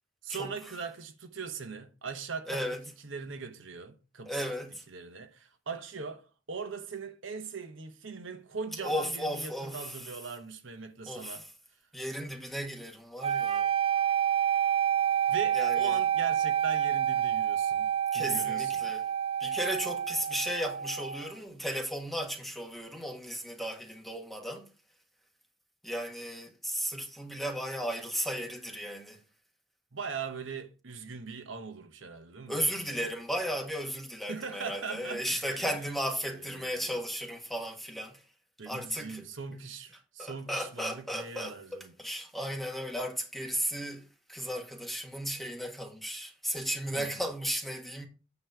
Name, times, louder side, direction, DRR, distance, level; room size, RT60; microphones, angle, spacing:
voice 1, 0.2-2.6 3.0-4.5 4.9-11.5 15.3-17.9 18.1-18.9 29.9-33.0 34.3-35.7 36.3-37.0 38.6-41.9 46.9-47.3, right 5 dB, 70° right, 1.1 m, -40 dB
voice 2, 2.5-2.8 4.3-4.8 8.8-10.0 11.1-11.5 11.9-13.7 15.5-16.0 18.1-19.1 19.4-24.7 25.8-29.2 32.5-38.2 38.7-39.2 40.2-48.1, equal, ahead, 1.6 m, -35 dB
sound 1, 13.2-21.3, right 9 dB, 30° right, 0.4 m, -28 dB
9.2 x 3.2 x 6.7 m
head